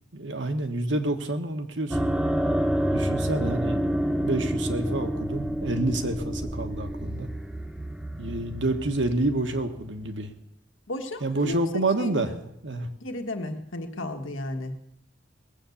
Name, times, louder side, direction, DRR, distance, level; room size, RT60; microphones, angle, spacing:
voice 1, 0.1-2.1 2.9-7.3 8.2-10.3 11.2-12.4 12.6-12.9, right 2 dB, 70° right, 6 dB, 1.4 m, -28 dB
sound 1, 1.9-10.2, equal, 5° right, 0.9 m, -29 dB
voice 2, 10.9-12.4 13.0-14.8, left 1 dB, 90° left, 4 dB, 1.6 m, -34 dB
19.5 x 8.0 x 7.1 m, 0.79 s
head